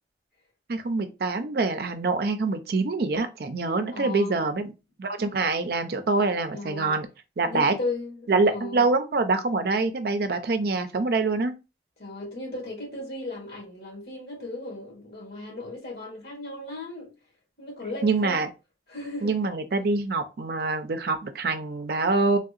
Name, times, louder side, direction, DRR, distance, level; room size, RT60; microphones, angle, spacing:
voice 1, 0.7-4.7 5.0-7.1 7.4-7.8 8.3-11.5 18.0-18.5 19.2-22.4, right 3 dB, 60° right, 0.5 m, -25 dB
voice 2, 3.9-4.4 6.5-7.0 7.4-8.9 12.0-17.1 17.6-18.5 18.9-19.4, left 2 dB, 65° left, 1.6 m, -36 dB
3.4 x 2.7 x 2.4 m
head